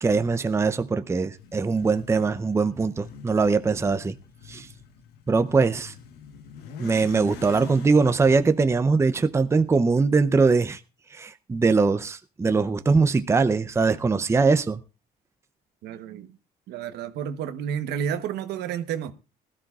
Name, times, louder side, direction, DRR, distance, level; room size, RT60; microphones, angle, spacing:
voice 1, 0.0-4.2 4.5-4.7 5.3-5.9 6.8-10.8 11.1-14.8, right 4 dB, 15° right, 0.6 m, -22 dB
Motorcycle / Accelerating revving vroom, 1.3-10.2, left 7 dB, 75° left, 1.3 m, -45 dB
voice 2, 15.8-16.4 16.7-19.1, right 8 dB, 80° right, 1.1 m, -31 dB
19.5 x 13.5 x 2.4 m
cardioid pair, 110°, 17 cm